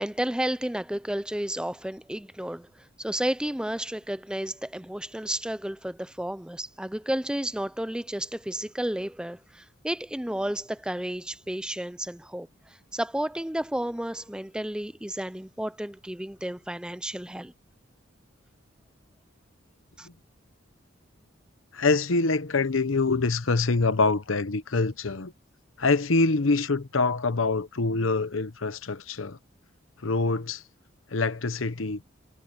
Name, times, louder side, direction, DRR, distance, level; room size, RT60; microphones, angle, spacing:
voice 1, 0.0-17.5 20.0-20.1, right 1 dB, 5° right, 0.4 m, -32 dB
voice 2, 21.7-25.3 25.8-29.4 30.0-30.6 31.1-32.0, left 3 dB, 85° left, 1.0 m, -25 dB
head